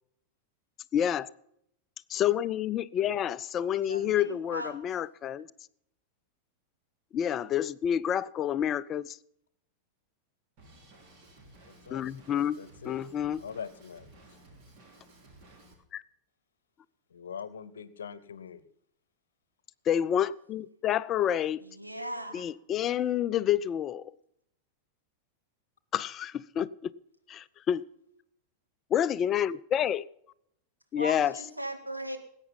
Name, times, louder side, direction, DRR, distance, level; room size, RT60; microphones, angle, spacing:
voice 1, 0.9-1.3 2.1-5.5 7.1-9.2 11.9-12.6 12.8-13.4 15.9-16.0 19.9-21.6 22.3-24.0 25.9-26.9 27.3-27.8 28.9-30.1 30.9-31.3, left 10 dB, 30° left, 0.5 m, -28 dB
voice 2, 3.9-4.8 21.6-22.5 31.0-32.2, right 1 dB, 85° right, 1.9 m, -38 dB
Drum kit, 10.6-15.7, right 2 dB, 40° right, 3.5 m, -55 dB
voice 3, 11.7-12.0 12.3-13.0 13.4-14.1 17.1-18.6, left 7 dB, 65° left, 0.9 m, -43 dB
19.5 x 9.0 x 5.5 m
figure-of-eight pair, 90°, 0 cm